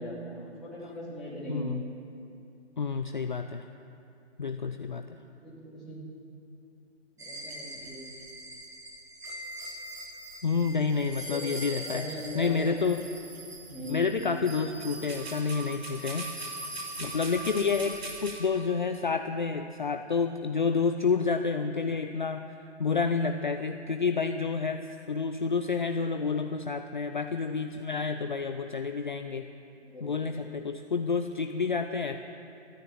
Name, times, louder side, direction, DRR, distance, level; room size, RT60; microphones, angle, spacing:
voice 1, 0.0-1.7 5.1-6.0 7.2-8.1 11.2-11.5 11.8-12.5 13.7-14.0 29.8-30.1, equal, ahead, -12 dB, 2.1 m, -40 dB
voice 2, 1.5-1.8 2.8-3.7 4.4-5.2 10.4-13.1 13.9-16.3 17.0-22.5 22.8-29.5 30.0-32.2, left 5 dB, 45° left, 7 dB, 0.4 m, -29 dB
sound 1, 7.2-18.4, right 1 dB, 60° right, 3.2 m, -41 dB
14.5 x 10.5 x 8.8 m, 2.7 s
hypercardioid pair, 175°, 35 cm